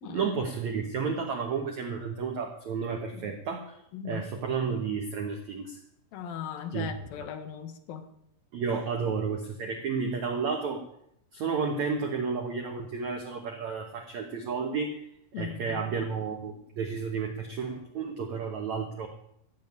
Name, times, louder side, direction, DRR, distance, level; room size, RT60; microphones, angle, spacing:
voice 1, 0.0-3.8 4.0-5.8 6.7-6.9 8.5-10.8 11.3-15.0 15.4-19.1, right 5 dB, 70° right, 3 dB, 1.7 m, -32 dB
voice 2, 3.9-4.3 6.1-8.1 15.3-15.8, left 8 dB, 65° left, 7 dB, 2.7 m, -38 dB
14.5 x 7.3 x 9.6 m, 0.76 s
omnidirectional pair, 5.2 m